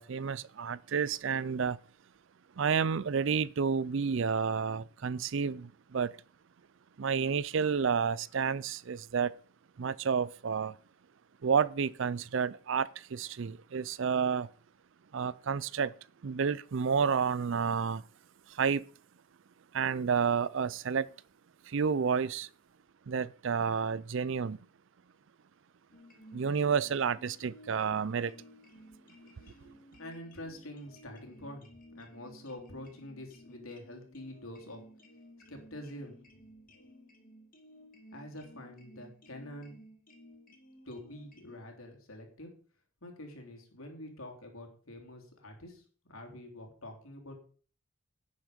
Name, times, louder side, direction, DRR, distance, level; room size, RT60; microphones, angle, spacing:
voice 1, 0.0-1.8 2.6-6.1 7.0-9.3 9.8-10.8 11.4-14.5 15.1-15.9 16.2-18.0 18.5-18.8 19.7-21.1 21.7-22.5 23.1-24.6 26.3-28.3, right 6 dB, 60° right, 0.4 m, -30 dB
sound 1, 25.9-41.6, equal, 40° left, 2.5 m, -56 dB
voice 2, 30.0-31.7 31.9-34.8 35.5-36.2 38.1-39.8 40.8-42.5 43.0-45.8 46.1-47.3, left 1 dB, 80° left, 3.4 m, -46 dB
11.0 x 9.3 x 5.2 m
head